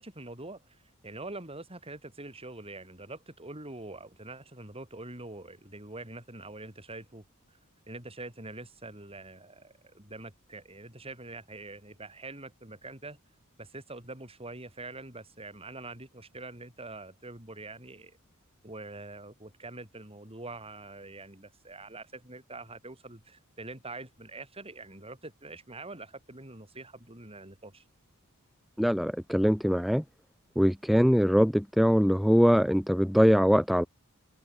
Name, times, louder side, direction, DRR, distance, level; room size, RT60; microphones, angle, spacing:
voice 1, 0.0-7.2 7.9-13.2 13.6-18.2 18.6-27.8, right 2 dB, 25° right, 7.5 m, -44 dB
voice 2, 28.8-30.0 30.6-33.9, equal, ahead, 0.3 m, -22 dB
head